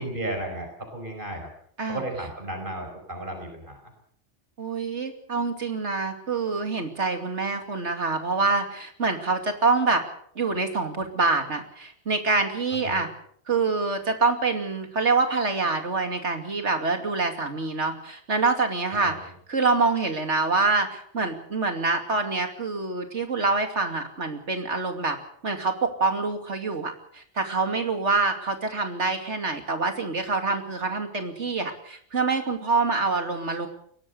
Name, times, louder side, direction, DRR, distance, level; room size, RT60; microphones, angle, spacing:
voice 1, 0.0-1.5 1.9-3.9 12.7-13.0 18.9-19.2, right 1 dB, 45° right, 4 dB, 5.5 m, -34 dB
voice 2, 4.6-10.0 10.3-13.1 13.5-19.1 19.5-25.2 25.4-33.7, right 3 dB, 85° right, 6 dB, 3.0 m, -26 dB
22.5 x 18.0 x 6.8 m, 0.62 s
omnidirectional pair, 1.2 m